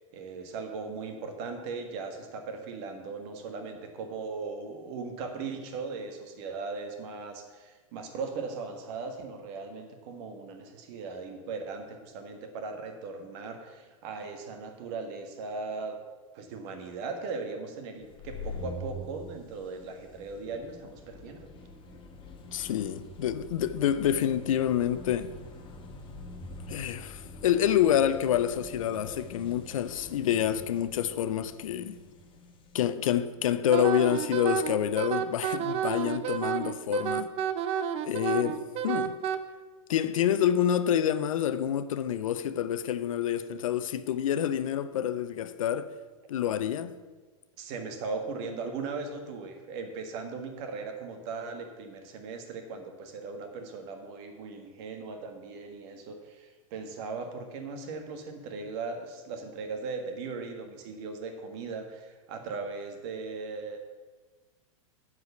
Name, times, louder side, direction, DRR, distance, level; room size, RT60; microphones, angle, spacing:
voice 1, 0.1-16.0 16.3-21.5 47.6-63.8, right 4 dB, 55° right, 1.7 m, -38 dB
sound 1, 18.0-35.4, left 2 dB, 30° left, 1.4 m, -46 dB
voice 2, 22.5-25.3 26.7-32.0 32.7-37.3 38.0-39.1 39.9-45.9 46.3-46.9, left 10 dB, 75° left, 0.6 m, -27 dB
Wind instrument woodwind instrument, 33.7-39.4, right 8 dB, 35° right, 0.6 m, -30 dB
9.5 x 4.9 x 6.9 m
hypercardioid pair, 115°, 17 cm